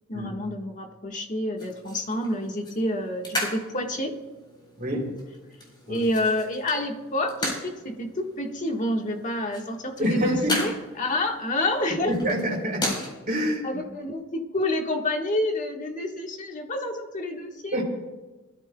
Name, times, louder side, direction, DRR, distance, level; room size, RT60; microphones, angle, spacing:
voice 1, 0.1-4.2 5.9-12.3 13.6-17.8, left 1 dB, 40° left, 3 dB, 1.5 m, -28 dB
sound 1, 1.6-13.1, left 1 dB, 25° left, 4.3 m, -36 dB
voice 2, 4.8-5.1 5.9-6.0 10.0-10.6 12.1-12.9 13.3-13.8 17.7-17.8, equal, 45° right, -1 dB, 3.3 m, -27 dB
22.5 x 13.5 x 2.3 m, 1.2 s
head